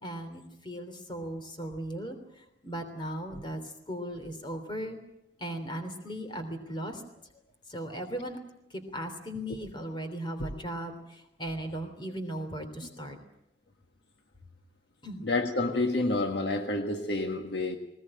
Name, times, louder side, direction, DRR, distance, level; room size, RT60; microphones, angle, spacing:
voice 1, 0.0-2.2 2.6-3.6 3.9-5.0 5.4-7.0 7.7-8.4 8.7-13.2 15.0-15.2, right 1 dB, 25° left, 7 dB, 3.2 m, -37 dB
voice 2, 15.2-17.8, left 2 dB, 60° left, 5 dB, 1.6 m, -29 dB
20.0 x 19.5 x 8.9 m, 0.86 s
head